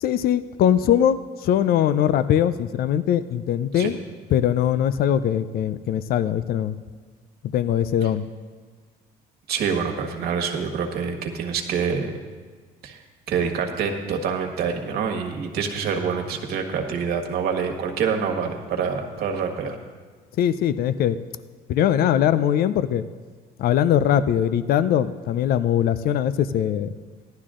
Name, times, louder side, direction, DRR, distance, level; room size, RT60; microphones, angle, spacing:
voice 1, 0.0-4.0 4.3-6.8 7.5-8.3 20.4-21.2 21.7-23.0 23.6-26.9, left 10 dB, 65° left, 14 dB, 0.5 m, -21 dB
voice 2, 9.5-12.1 12.8-13.0 13.3-19.8, right 6 dB, 70° right, 3 dB, 1.6 m, -26 dB
15.0 x 11.5 x 3.7 m, 1.5 s
cardioid pair, 110°, 17 cm